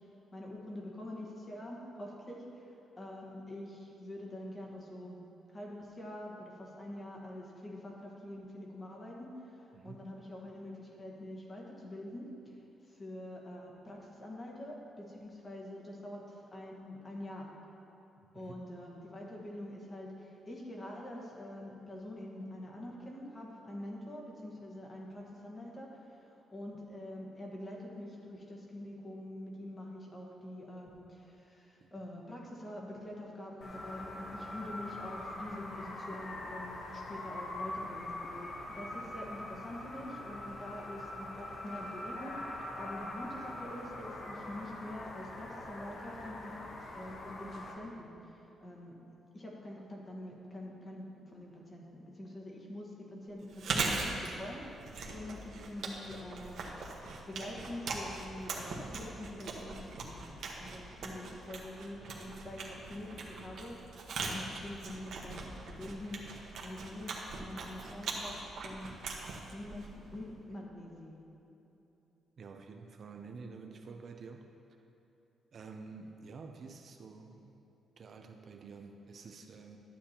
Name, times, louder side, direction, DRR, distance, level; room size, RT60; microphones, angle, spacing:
voice 1, 0.3-12.5 12.8-17.5 18.3-57.0 57.3-63.9 64.1-66.2 66.6-68.9 69.5-71.2, left 1 dB, 25° left, -2 dB, 1.4 m, -45 dB
voice 2, 9.7-10.0 18.3-18.6 31.8-31.9 72.4-74.5 75.5-77.6 78.0-79.8, right 4 dB, 45° right, 4 dB, 0.5 m, -49 dB
sound 1, 33.6-47.7, left 1 dB, 45° left, 1.1 m, -43 dB
Chewing mastication, 53.4-70.3, right 3 dB, 60° right, 1.1 m, -41 dB
12.0 x 8.4 x 2.9 m, 2.9 s
cardioid pair, 150°, 0 cm